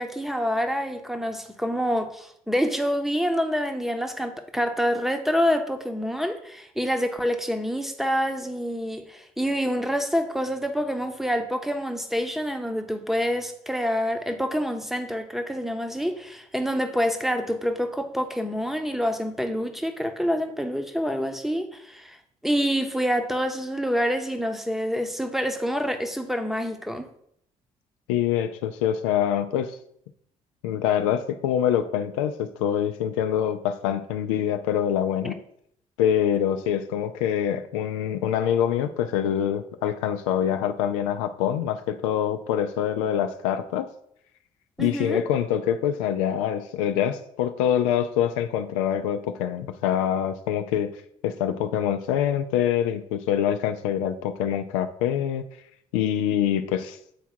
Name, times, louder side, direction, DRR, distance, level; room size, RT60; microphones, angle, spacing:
voice 1, 0.0-22.2 22.4-27.1 35.2-35.3 44.8-45.2, equal, ahead, 0.9 m, -27 dB
voice 2, 28.1-29.8 30.6-35.4 36.0-43.9 44.8-55.4 55.9-57.0, left 9 dB, 70° left, 0.4 m, -25 dB
7.2 x 4.5 x 4.3 m
figure-of-eight pair, 45°, 17 cm